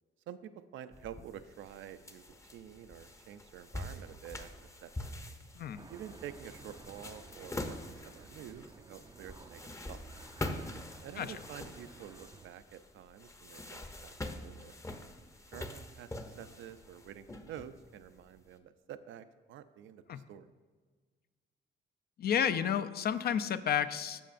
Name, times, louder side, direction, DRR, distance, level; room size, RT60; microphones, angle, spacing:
voice 1, 0.7-5.1 5.9-10.0 11.0-14.1 14.4-14.7 15.5-20.5, right 10 dB, 75° right, 11 dB, 0.5 m, -49 dB
sound 1, 0.9-18.4, left 1 dB, 15° left, 0.7 m, -45 dB
sound 2, 5.8-12.5, right 4 dB, 20° right, 0.4 m, -55 dB
voice 2, 22.2-24.2, left 8 dB, 50° left, 13 dB, 0.4 m, -31 dB
14.0 x 5.5 x 2.5 m, 1.5 s
cardioid pair, 90°, 20 cm